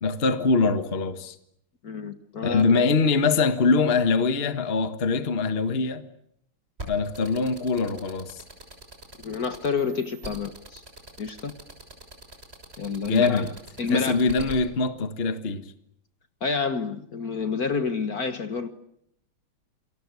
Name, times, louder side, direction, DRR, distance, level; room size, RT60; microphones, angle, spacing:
voice 1, 0.0-1.4 2.4-6.0 6.9-8.4 13.1-13.5 13.9-15.7, left 4 dB, 30° left, 1.5 m, -23 dB
voice 2, 1.8-2.9 9.2-10.8 11.2-11.5 12.8-13.4 13.8-14.3 16.4-18.7, left 4 dB, 50° left, 1.8 m, -29 dB
sound 1, 6.8-14.6, right 1 dB, 30° right, 6.7 m, -41 dB
28.5 x 22.5 x 8.4 m
omnidirectional pair, 2.3 m